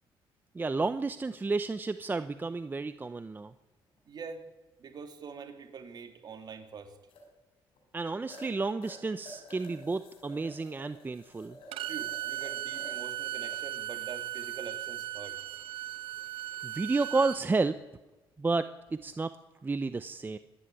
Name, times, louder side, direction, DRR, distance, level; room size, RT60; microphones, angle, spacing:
voice 1, 0.5-3.5 7.9-11.6 16.6-17.7 18.4-19.3 19.6-20.4, right 3 dB, 20° right, 12 dB, 0.7 m, -31 dB
sound 1, 1.4-1.5 4.0-4.1 7.1-7.2 7.7-7.8 8.3-8.5 8.8-13.5 14.0-14.2 14.8-15.3 18.8-19.0, left 1 dB, 70° left, 7.0 m, -51 dB
voice 2, 4.1-4.4 4.8-6.9 11.9-15.4, right 5 dB, 50° right, 6 dB, 3.0 m, -44 dB
Bowed string instrument, 11.7-17.4, right 13 dB, 70° right, 0.8 m, -37 dB
25.0 x 11.0 x 9.9 m, 1.1 s
cardioid pair, 105°, 9 cm